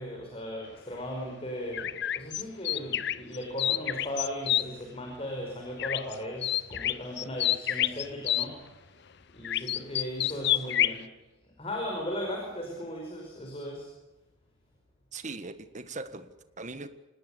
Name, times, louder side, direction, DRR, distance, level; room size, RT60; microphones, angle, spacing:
voice 1, 0.0-8.8 9.3-11.1 11.4-13.9, equal, 30° left, 1 dB, 5.1 m, -37 dB
sound 1, 1.7-4.6 5.8-6.1 6.4-8.5 9.4-11.0, left 12 dB, 60° left, 0.8 m, -28 dB
voice 2, 15.1-16.9, right 3 dB, 40° right, 11 dB, 1.6 m, -40 dB
25.5 x 19.0 x 8.5 m, 1.1 s
head